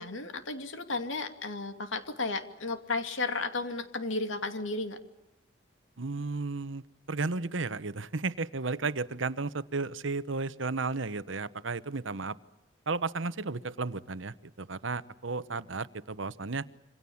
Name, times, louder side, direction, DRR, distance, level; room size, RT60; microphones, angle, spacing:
voice 1, 0.0-5.0, left 3 dB, 80° left, 8 dB, 2.6 m, -33 dB
voice 2, 6.0-12.4 12.9-16.7, right 3 dB, 75° right, 15 dB, 1.0 m, -33 dB
27.5 x 25.5 x 7.2 m, 0.93 s
head